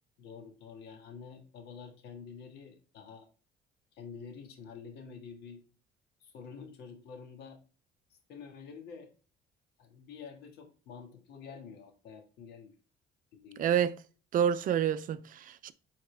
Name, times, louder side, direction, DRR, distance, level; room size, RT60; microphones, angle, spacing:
voice 1, 0.2-3.3 3.9-5.6 6.2-7.6 8.3-9.1 9.8-12.8 13.4-13.7, left 6 dB, 75° left, 1.8 m, -48 dB
voice 2, 13.6-13.9 14.3-15.7, right 9 dB, 55° right, 0.5 m, -28 dB
8.2 x 4.2 x 3.3 m
cardioid pair, 110°, 17 cm